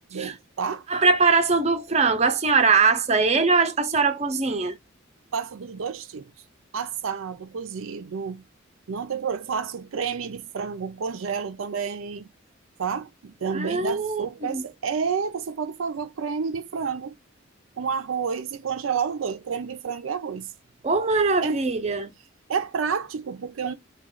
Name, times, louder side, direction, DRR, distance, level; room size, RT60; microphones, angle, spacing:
voice 1, 0.1-0.8 5.3-6.3 6.7-8.4 8.9-12.3 12.8-17.2 17.8-20.5 21.4-21.6 22.5-23.7, right 6 dB, 85° right, 0.5 m, -30 dB
voice 2, 0.9-4.8 13.5-14.6 20.8-22.1, right 4 dB, 30° right, 0.5 m, -22 dB
3.0 x 2.3 x 3.6 m
head